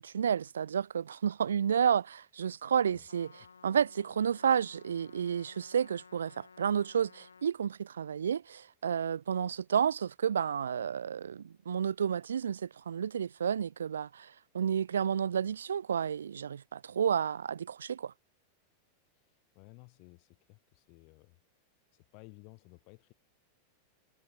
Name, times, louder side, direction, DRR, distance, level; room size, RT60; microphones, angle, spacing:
voice 1, 0.0-3.3 3.6-14.3 14.5-18.1, right 8 dB, 80° right, 0.4 m, -31 dB
Trumpet, 3.1-7.5, left 5 dB, 85° left, 1.3 m, -56 dB
voice 2, 19.5-21.4 21.9-23.1, left 36 dB, 50° left, 4.5 m, -56 dB
hypercardioid pair, 95°, 0 cm